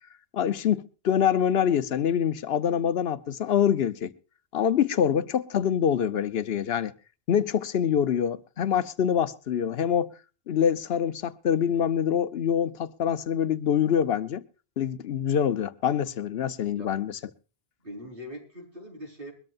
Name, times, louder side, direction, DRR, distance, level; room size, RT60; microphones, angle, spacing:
voice 1, 0.3-4.1 4.5-6.9 7.3-10.1 10.5-14.4 14.8-17.2, left 8 dB, 75° left, 1.0 m, -25 dB
voice 2, 16.7-17.1 17.8-19.3, equal, 60° right, 4.7 m, -42 dB
22.5 x 13.0 x 2.5 m
omnidirectional pair, 1.0 m